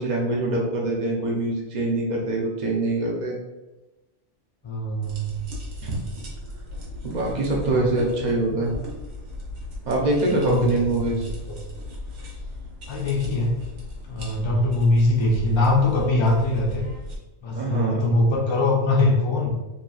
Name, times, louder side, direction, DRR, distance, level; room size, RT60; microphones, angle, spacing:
voice 1, 0.0-3.4 5.8-6.0 7.0-8.7 9.9-11.3 17.5-18.0, right 2 dB, 45° right, -1 dB, 0.6 m, -24 dB
voice 2, 4.6-5.3 7.7-7.9 10.3-11.1 11.5-11.8 12.9-13.5 14.1-16.8 17.4-19.5, left 2 dB, 45° left, -2 dB, 0.4 m, -22 dB
sound 1, 5.0-17.2, left 1 dB, 70° right, 1.1 m, -37 dB
2.9 x 2.7 x 2.3 m, 1.1 s
omnidirectional pair, 1.3 m